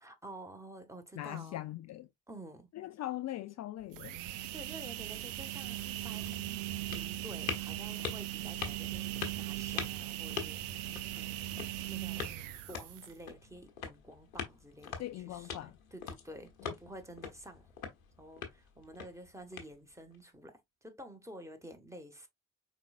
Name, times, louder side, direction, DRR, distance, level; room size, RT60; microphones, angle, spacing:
voice 1, 0.0-1.6 2.3-2.7 4.5-12.3 12.7-17.7 18.2-22.3, right 1 dB, 5° right, 1.5 m, -50 dB
voice 2, 1.2-2.1 2.7-4.2 15.0-15.7 16.6-16.7, left 14 dB, 40° left, 0.5 m, -41 dB
sound 1, 3.8-13.3, right 14 dB, 70° right, 0.6 m, -39 dB
sound 2, 5.8-20.2, left 7 dB, 75° left, 1.1 m, -45 dB
5.2 x 4.0 x 2.5 m
figure-of-eight pair, 40°, 40 cm